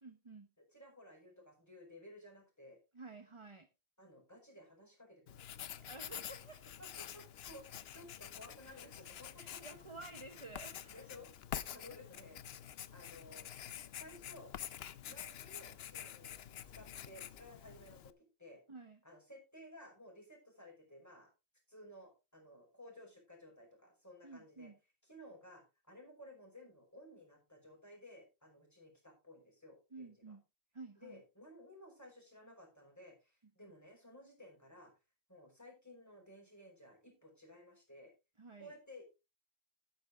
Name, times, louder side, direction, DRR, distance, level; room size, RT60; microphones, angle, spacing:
voice 1, 0.0-0.5 2.9-3.7 5.8-6.6 8.6-8.8 9.4-11.0 18.7-19.0 24.2-24.8 29.9-30.4 30.7-31.2 38.4-38.8, right 3 dB, 30° right, 7 dB, 1.0 m, -52 dB
voice 2, 0.7-2.8 4.0-5.5 6.8-9.8 10.9-11.3 11.7-12.4 12.9-13.5 14.0-14.6 15.1-16.4 16.7-18.6 19.0-21.3 21.7-24.7 25.0-30.4 31.0-34.9 35.3-38.1 38.6-39.0, left 1 dB, 15° left, 1 dB, 5.5 m, -56 dB
Writing, 5.3-18.1, left 10 dB, 70° left, 0.9 m, -48 dB
12.0 x 9.4 x 3.5 m, 0.27 s
omnidirectional pair, 1.1 m